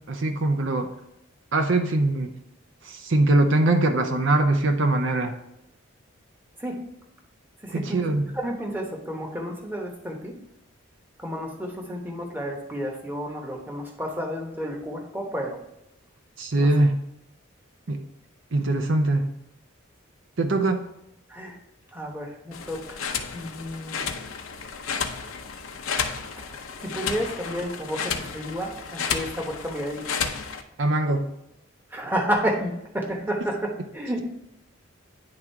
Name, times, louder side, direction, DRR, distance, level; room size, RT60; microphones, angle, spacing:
voice 1, 0.1-0.9 1.5-2.3 2.8-5.3 7.7-8.3 16.4-17.0 17.9-18.0 18.5-19.2 20.4-20.8 30.8-31.2, right 2 dB, 65° right, 6 dB, 0.6 m, -22 dB
voice 2, 7.6-8.1 8.3-10.3 11.2-15.6 16.6-16.7 21.3-21.6 21.9-23.0 23.3-24.0 26.8-30.1 31.9-34.2, equal, 10° right, 0 dB, 1.0 m, -31 dB
sound 1, 22.5-30.6, left 6 dB, 90° left, 0.7 m, -32 dB
9.7 x 3.6 x 4.5 m, 0.84 s
head